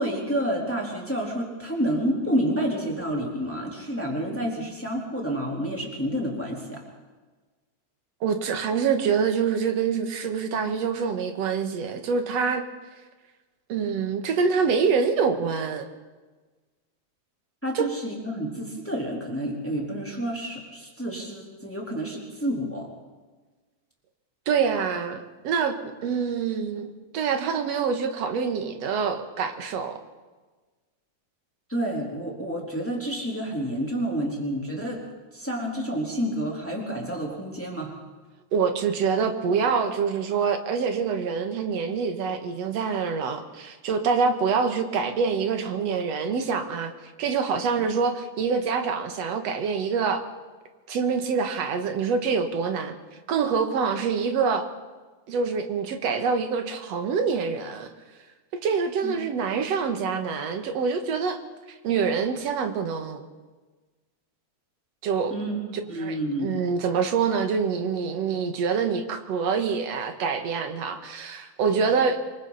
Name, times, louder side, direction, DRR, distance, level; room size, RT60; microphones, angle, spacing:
voice 1, 0.0-6.8 17.6-22.9 31.7-35.0 35.3-38.0 59.0-59.1 65.3-65.6 65.9-66.5, equal, 5° left, -2 dB, 3.6 m, -29 dB
voice 2, 8.2-12.6 13.7-15.8 17.7-17.9 24.5-30.0 38.5-46.9 47.2-50.2 50.9-52.9 53.3-54.7 55.3-57.9 58.5-61.4 61.8-63.2 65.0-65.3 66.0-72.2, right 5 dB, 65° right, 6 dB, 2.6 m, -26 dB
27.0 x 23.0 x 4.2 m, 1.3 s
omnidirectional pair, 3.3 m